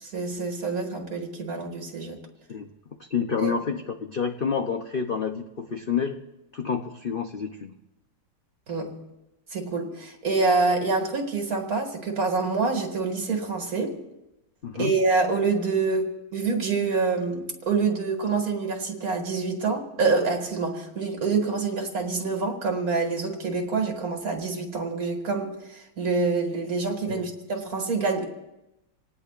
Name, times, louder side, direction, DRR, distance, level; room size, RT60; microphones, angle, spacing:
voice 1, 0.0-2.2 3.4-3.5 8.7-9.0 9.5-14.0 14.7-28.3, right 4 dB, 50° right, 3 dB, 2.6 m, -26 dB
voice 2, 3.1-6.2 6.5-7.8 14.6-14.9 27.1-27.3, left 6 dB, 50° left, 5 dB, 0.6 m, -28 dB
27.0 x 18.5 x 2.5 m, 0.94 s
omnidirectional pair, 2.0 m